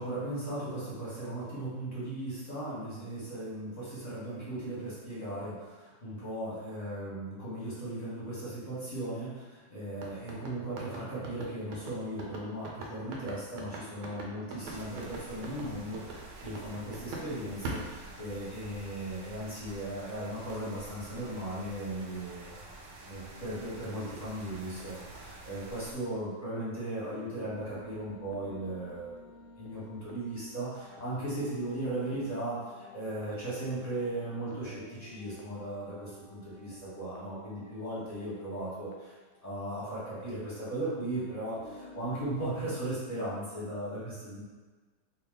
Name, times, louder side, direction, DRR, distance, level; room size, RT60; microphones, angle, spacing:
voice 1, 0.0-22.5 23.0-29.2 29.5-39.1 39.4-44.4, right 1 dB, 25° left, -9 dB, 1.2 m, -37 dB
sound 1, 10.0-17.3 17.6-18.7, right 2 dB, 80° right, 1.3 m, -41 dB
sound 2, 14.6-25.9, right 2 dB, 65° right, 0.7 m, -48 dB
sound 3, 23.1-26.2 26.6-26.7 27.0-40.3 40.7-42.7, left 1 dB, 70° left, 0.8 m, -53 dB
3.2 x 2.8 x 3.7 m, 1.3 s
omnidirectional pair, 1.8 m